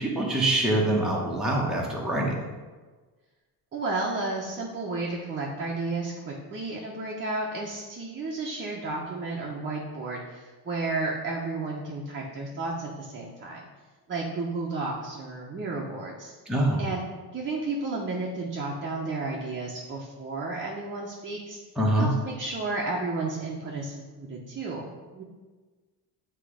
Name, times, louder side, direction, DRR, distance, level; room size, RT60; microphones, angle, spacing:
voice 1, 0.0-2.4 16.5-16.8 21.8-22.1, right 1 dB, ahead, -4 dB, 1.0 m, -24 dB
voice 2, 3.7-13.6 14.1-16.3 16.8-17.0 17.3-21.6 22.0-25.2, right 3 dB, 30° right, -3 dB, 0.8 m, -32 dB
8.0 x 3.0 x 4.9 m, 1.3 s
cardioid pair, 140°, 41 cm